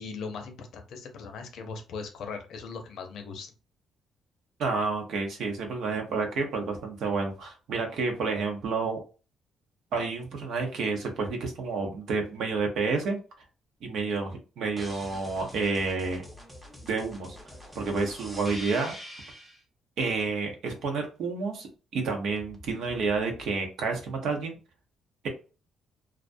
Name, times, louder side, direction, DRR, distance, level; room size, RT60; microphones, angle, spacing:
voice 1, 0.0-3.5, left 5 dB, 75° left, 5 dB, 0.6 m, -39 dB
voice 2, 4.6-9.0 9.9-13.2 13.8-16.2 16.8-17.4 17.7-18.9 20.0-21.7 21.9-24.6, right 4 dB, 75° right, 3 dB, 0.8 m, -29 dB
sound 1, 14.8-19.6 22.4-23.4, equal, 5° right, 0.7 m, -45 dB
2.4 x 2.1 x 2.5 m, 0.34 s
cardioid pair, 90°, 0 cm